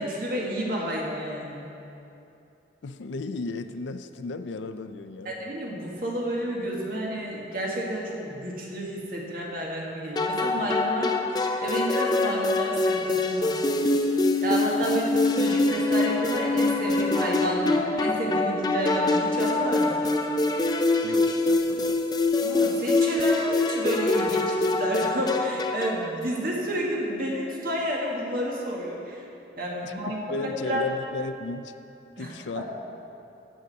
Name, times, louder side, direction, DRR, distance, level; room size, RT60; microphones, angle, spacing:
voice 1, 0.0-1.6 5.3-11.1 11.6-13.6 14.4-20.2 22.4-29.2 29.6-30.8 32.2-32.6, equal, 50° right, -3 dB, 1.7 m, -30 dB
voice 2, 2.8-5.4 21.0-22.0 29.8-31.7 32.2-32.6, left 3 dB, 90° left, 10 dB, 0.5 m, -35 dB
sound 1, 10.2-26.1, left 2 dB, 20° left, 0.5 m, -24 dB
15.0 x 6.5 x 4.1 m, 2.8 s
head